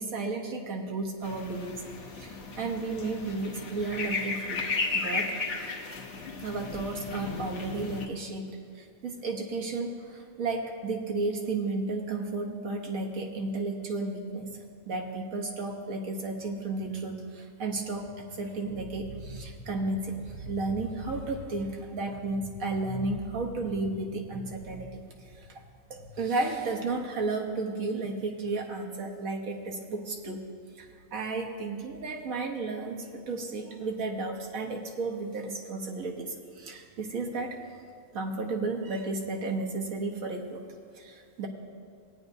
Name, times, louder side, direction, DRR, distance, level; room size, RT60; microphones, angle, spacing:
voice 1, 0.0-1.8 2.1-4.7 4.9-5.3 6.4-14.5 14.9-25.0 25.3-25.6 25.9-30.4 30.8-37.6 38.1-40.6 40.9-41.5, right 3 dB, 75° right, 1 dB, 1.5 m, -33 dB
sound 1, 1.2-8.1, left 3 dB, 55° left, 1.1 m, -35 dB
17.5 x 9.4 x 2.7 m, 2.2 s
omnidirectional pair, 1.5 m